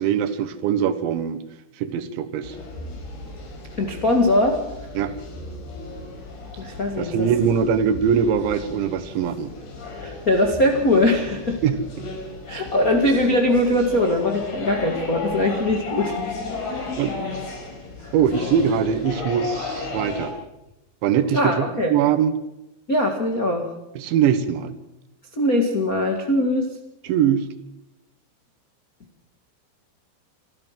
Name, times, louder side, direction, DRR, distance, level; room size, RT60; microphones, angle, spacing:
voice 1, 0.0-1.4 1.8-2.6 5.0-5.1 7.0-9.5 11.6-11.8 17.0-17.1 18.1-20.3 21.0-22.3 24.0-24.8 27.0-27.5, right 8 dB, 75° right, 12 dB, 3.5 m, -22 dB
sound 1, 2.4-20.3, left 3 dB, 65° left, 7.2 m, -34 dB
voice 2, 3.8-4.6 6.6-7.3 10.0-11.6 12.5-16.1 16.7-16.9 18.0-18.1 21.3-21.9 22.9-23.7 25.3-26.7, left 1 dB, 80° left, 2 dB, 0.7 m, -21 dB
27.0 x 13.5 x 7.5 m, 0.92 s
omnidirectional pair, 5.4 m